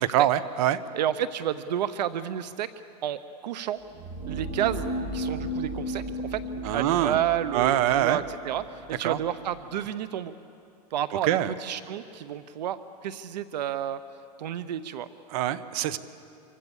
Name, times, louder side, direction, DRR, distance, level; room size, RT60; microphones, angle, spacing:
voice 1, 0.1-0.8 6.6-7.2 7.5-8.2 9.0-9.2 11.3-11.5 15.3-16.0, right 12 dB, 60° right, 14 dB, 1.1 m, -24 dB
voice 2, 0.9-2.7 3.0-3.8 4.3-6.4 6.7-10.3 10.9-11.3 11.6-14.0 14.4-15.1, right 10 dB, 85° right, 14 dB, 0.8 m, -30 dB
sound 1, 3.8-9.7, equal, 30° right, 3.7 m, -35 dB
26.0 x 24.5 x 7.2 m, 2.6 s
supercardioid pair, 140°, 21 cm